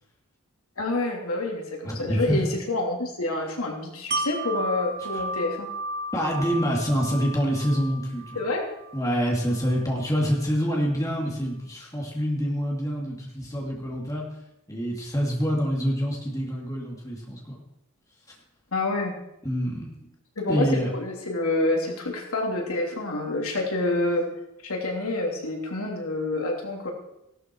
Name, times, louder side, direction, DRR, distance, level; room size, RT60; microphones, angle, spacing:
voice 1, 0.8-5.7 8.3-8.7 18.7-19.1 20.4-24.3 24.6-26.9, left 2 dB, 75° left, 0 dB, 3.0 m, -27 dB
voice 2, 1.8-2.4 5.1-5.2 6.1-8.4 8.9-14.3 14.7-17.6 19.4-19.9 20.5-20.9, equal, 15° left, -2 dB, 2.7 m, -26 dB
Wind chime, 4.1-9.9 10.3-10.4, right 1 dB, 40° right, 2.4 m, -34 dB
16.0 x 12.5 x 4.7 m, 0.85 s
head